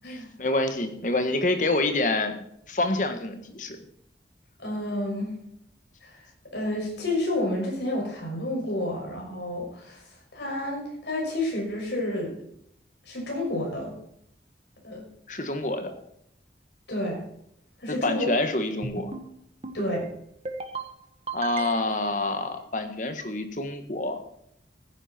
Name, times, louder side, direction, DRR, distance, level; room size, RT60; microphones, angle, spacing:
voice 1, 0.1-3.8 15.3-15.9 17.9-19.1 21.3-24.2, left 2 dB, 45° left, 8 dB, 1.7 m, -27 dB
voice 2, 4.6-5.3 6.0-6.2 6.5-10.0 10.3-12.3 13.1-13.9 14.8-15.0 15.8-15.9 16.9-17.2 17.8-18.3 19.7-20.1, left 1 dB, 80° left, -1 dB, 6.2 m, -30 dB
sound 1, 18.8-19.3 19.6-20.1 20.5-20.9 21.3-22.0, right 3 dB, 35° right, 1.5 m, -35 dB
15.0 x 10.0 x 4.5 m, 0.72 s
head